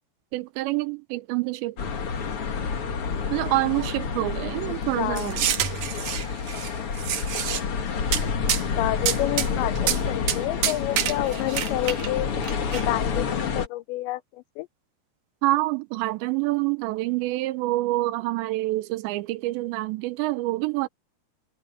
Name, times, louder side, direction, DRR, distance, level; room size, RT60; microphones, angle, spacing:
voice 1, 0.3-1.8 3.3-5.6 15.4-20.9, right 19 dB, 80° right, 3.0 m, -27 dB
sound 1, 1.8-13.7, left 6 dB, 50° left, 1.8 m, -29 dB
voice 2, 4.6-5.3 8.5-12.3 12.7-14.7, left 17 dB, 85° left, 3.0 m, -29 dB
sound 2, 5.2-6.7 6.9-7.6 8.1-8.2 8.5-8.6 9.1-9.5 9.8-10.0 10.3-10.4 10.6-12.1 12.4-12.8, right 10 dB, 65° right, 2.2 m, -27 dB
omnidirectional pair, 5.1 m